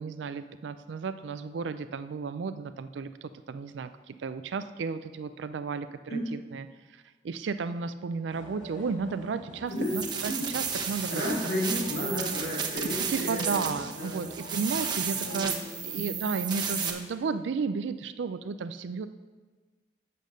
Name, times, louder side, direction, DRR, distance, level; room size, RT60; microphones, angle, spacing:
voice 1, 0.0-5.9 6.3-11.4 13.1-15.5 15.8-19.1, right 5 dB, 80° right, 11 dB, 0.4 m, -33 dB
sound 1, 8.3-15.4, equal, 45° left, 3.6 m, -47 dB
voice 2, 9.7-10.6 11.1-14.3 15.2-15.9, equal, 65° left, -7 dB, 2.5 m, -33 dB
sound 2, 9.8-16.9, right 6 dB, 25° right, 1.0 m, -33 dB
8.5 x 6.6 x 6.4 m, 1.4 s
head